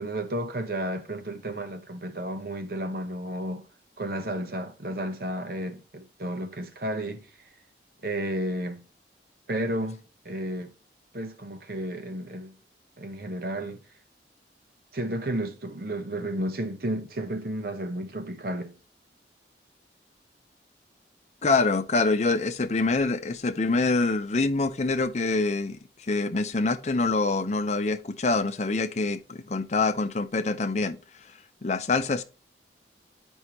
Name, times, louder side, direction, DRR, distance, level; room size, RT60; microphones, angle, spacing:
voice 1, 0.0-3.7 4.0-7.3 8.0-8.8 9.5-10.7 11.1-12.5 13.0-13.8 14.9-18.8, right 1 dB, 55° right, 1.0 m, -32 dB
voice 2, 21.4-32.2, left 3 dB, 40° left, 0.6 m, -26 dB
9.8 x 5.4 x 3.0 m
head